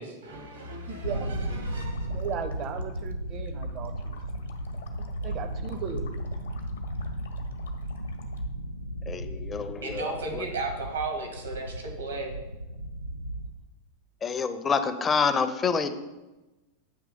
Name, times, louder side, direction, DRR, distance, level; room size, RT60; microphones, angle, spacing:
voice 1, 0.0-2.2 9.8-12.3, right 3 dB, 70° right, 2 dB, 1.3 m, -35 dB
voice 2, 0.9-1.3 2.1-4.2 5.2-6.1, right 7 dB, 35° right, 9 dB, 0.6 m, -36 dB
sound 1, 1.0-13.5, right 1 dB, 85° right, 0.4 m, -35 dB
sound 2, 1.7-8.4, left 5 dB, 65° left, 0.7 m, -51 dB
voice 3, 9.1-10.4 14.2-15.9, left 5 dB, 20° left, 10 dB, 0.5 m, -27 dB
8.0 x 3.0 x 5.2 m, 1.1 s
figure-of-eight pair, 90°, 0 cm